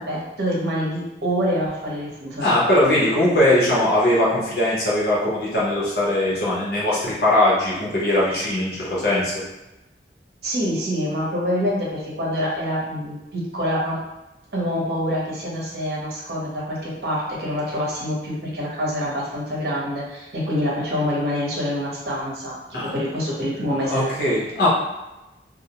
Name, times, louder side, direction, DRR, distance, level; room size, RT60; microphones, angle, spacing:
voice 1, 0.0-2.5 10.4-14.0 14.5-24.3, equal, 65° right, -5 dB, 0.8 m, -26 dB
voice 2, 2.4-9.3 22.7-22.9 23.8-24.7, left 1 dB, 65° left, -6 dB, 0.9 m, -20 dB
2.5 x 2.0 x 2.8 m, 1.0 s
head